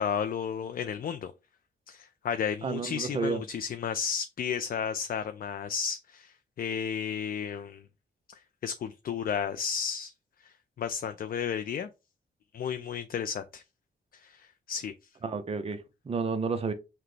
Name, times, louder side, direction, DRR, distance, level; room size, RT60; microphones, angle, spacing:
voice 1, 0.0-1.3 1.9-7.8 8.6-10.1 10.4-11.9 12.5-13.6 14.2-14.9, left 7 dB, 50° left, 0.4 m, -33 dB
voice 2, 2.6-3.4 15.2-16.7, right 4 dB, 30° right, 0.6 m, -31 dB
5.9 x 2.2 x 3.3 m
cardioid pair, 80°, 19 cm